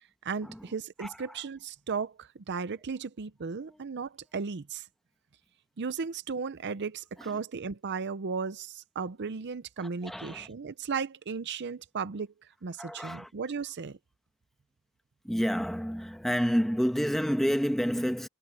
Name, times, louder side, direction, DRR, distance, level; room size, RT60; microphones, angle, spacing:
voice 1, 0.2-4.9 5.8-12.3 12.6-14.0, right 5 dB, 55° right, 0.6 m, -35 dB
voice 2, 1.0-1.4 3.7-3.8 7.2-7.4 9.8-10.5 12.8-13.3 15.2-18.3, equal, ahead, 1.3 m, -30 dB
head